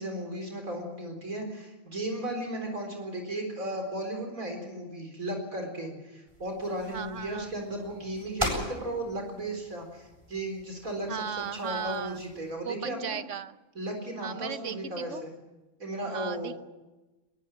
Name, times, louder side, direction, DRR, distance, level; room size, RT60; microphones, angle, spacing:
voice 1, 0.0-13.2 13.7-15.3 15.8-16.5, right 1 dB, 85° right, 3 dB, 4.8 m, -35 dB
sound 1, 6.3-12.5, equal, 20° right, 7.4 m, -40 dB
voice 2, 6.9-7.5 11.1-12.2 12.6-13.6 14.2-15.2 16.1-16.6, right 8 dB, 65° right, 12 dB, 1.2 m, -37 dB
22.5 x 21.5 x 7.5 m, 1.1 s
omnidirectional pair, 1.4 m